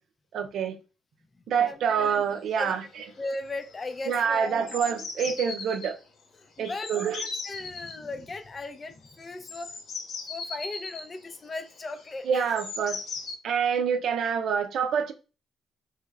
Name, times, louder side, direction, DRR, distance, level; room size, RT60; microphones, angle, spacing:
voice 1, 0.3-0.8 1.5-3.1 4.1-6.0 6.6-7.3 12.2-13.0 13.4-15.1, right 7 dB, 75° right, 0.5 m, -27 dB
sound 1, 2.1-2.2 2.3-2.7 3.0-3.4 3.6-5.9 6.6-8.0 9.0-13.4, left 4 dB, 75° left, 0.7 m, -38 dB
voice 2, 3.2-4.7 6.6-6.9 7.4-9.7 10.3-12.5, left 2 dB, 35° left, 0.5 m, -37 dB
3.2 x 3.1 x 2.4 m
cardioid pair, 90°, 0 cm